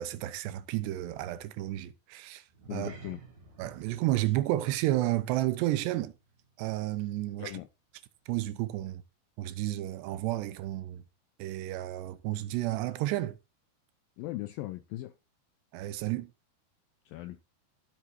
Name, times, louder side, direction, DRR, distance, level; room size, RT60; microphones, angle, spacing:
voice 1, 0.0-2.4 2.7-2.9 3.6-6.1 6.6-7.5 8.3-9.0 9.4-11.0 11.4-13.4 15.7-16.3, right 15 dB, 90° right, 3.0 m, -31 dB
sound 1, 2.5-7.1 7.4-7.7 8.2-8.3, right 4 dB, 70° right, 5.3 m, -54 dB
voice 2, 2.7-3.2 7.4-7.7 14.2-15.1 17.1-17.4, left 17 dB, 90° left, 2.0 m, -38 dB
15.0 x 8.1 x 2.8 m
omnidirectional pair, 4.9 m